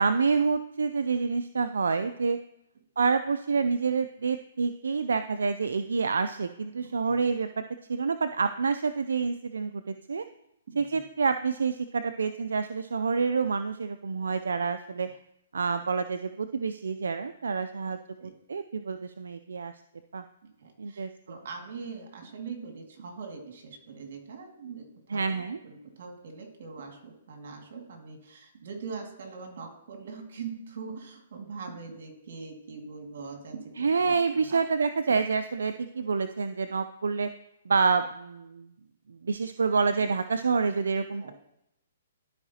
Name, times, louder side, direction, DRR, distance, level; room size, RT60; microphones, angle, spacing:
voice 1, 0.0-2.4 3.0-7.6 7.9-10.3 10.8-15.1 15.5-18.0 18.5-19.7 20.1-20.2 20.8-21.1 25.1-25.6 33.8-37.3 37.7-38.7 39.1-41.3, right 5 dB, 90° right, 10 dB, 0.4 m, -27 dB
voice 2, 6.8-7.2 10.7-11.0 18.2-18.3 20.4-34.6 35.1-35.2 41.2-41.3, right 5 dB, 65° right, 3 dB, 2.0 m, -42 dB
13.0 x 4.8 x 2.8 m, 0.82 s
hypercardioid pair, 145°, 0 cm